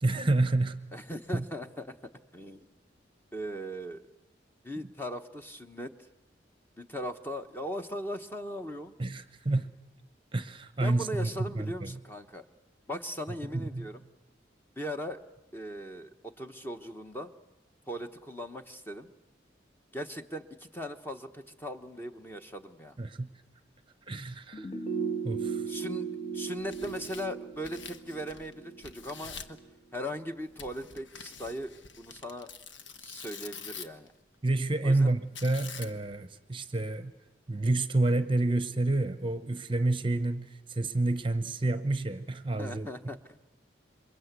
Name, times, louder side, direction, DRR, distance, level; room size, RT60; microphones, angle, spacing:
voice 1, 0.0-0.9 1.3-1.5 9.0-9.7 10.3-12.0 13.5-13.9 23.0-23.3 24.1-24.7 25.2-25.7 34.4-37.1 37.5-42.9, right 2 dB, 25° right, 0.9 m, -29 dB
voice 2, 0.9-1.9 2.3-2.7 3.3-4.0 4.6-5.9 6.8-9.0 10.8-12.4 12.9-14.0 14.8-15.2 15.5-17.3 17.9-19.1 19.9-23.0 25.7-26.1 26.3-29.6 29.9-32.5 33.0-34.1 34.8-35.1 42.6-43.4, equal, 10° left, 1.0 m, -39 dB
sound 1, 24.5-29.7 30.0-30.1, right 6 dB, 35° left, 1.4 m, -37 dB
Tearing, 26.5-28.5 28.8-29.6 30.6-34.1 35.4-36.2, left 6 dB, 85° left, 1.4 m, -46 dB
27.5 x 23.0 x 8.2 m
head